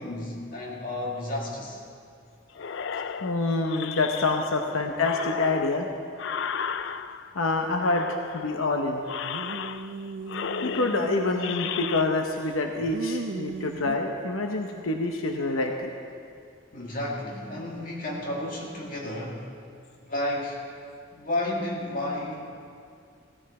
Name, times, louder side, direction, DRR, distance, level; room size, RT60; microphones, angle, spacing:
voice 1, 0.0-1.8 4.7-4.8 16.7-19.5 20.0-20.6 21.1-22.5, left 1 dB, 40° left, -2 dB, 2.1 m, -32 dB
sound 1, 2.6-4.6 5.0-7.4 7.7-8.6 9.0-10.0 10.3-12.0, left 7 dB, 60° left, 0.4 m, -34 dB
voice 2, 3.2-5.9 7.3-9.0 10.6-15.9, left 3 dB, 85° left, 3 dB, 0.9 m, -26 dB
sound 2, 9.2-12.0 12.4-14.0, right 4 dB, 65° right, 0.5 m, -37 dB
16.0 x 14.0 x 4.3 m, 2.3 s
head